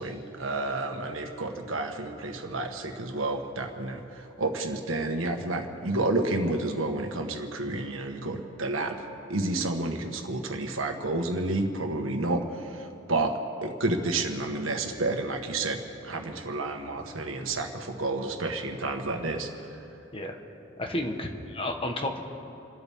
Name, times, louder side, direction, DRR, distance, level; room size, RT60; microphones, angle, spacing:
voice 1, 0.0-9.0 9.3-13.3 13.6-19.8, right 2 dB, 85° right, 3 dB, 1.6 m, -30 dB
voice 2, 20.8-22.2, left 1 dB, 30° left, 3 dB, 1.4 m, -31 dB
29.5 x 13.0 x 3.7 m, 3.0 s
head